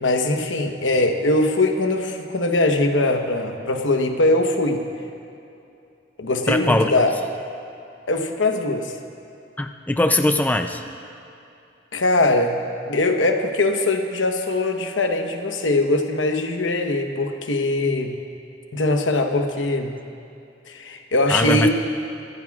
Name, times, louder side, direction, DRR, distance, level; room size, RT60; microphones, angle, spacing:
voice 1, 0.0-4.8 6.2-7.1 8.1-8.9 11.9-12.6 12.9-18.2 18.7-19.9 20.7-21.7, left 2 dB, 85° left, 4 dB, 1.1 m, -21 dB
voice 2, 6.5-6.9 9.6-10.8 21.3-21.7, left 1 dB, 10° left, 6 dB, 0.4 m, -21 dB
24.0 x 15.0 x 2.4 m, 2.7 s
head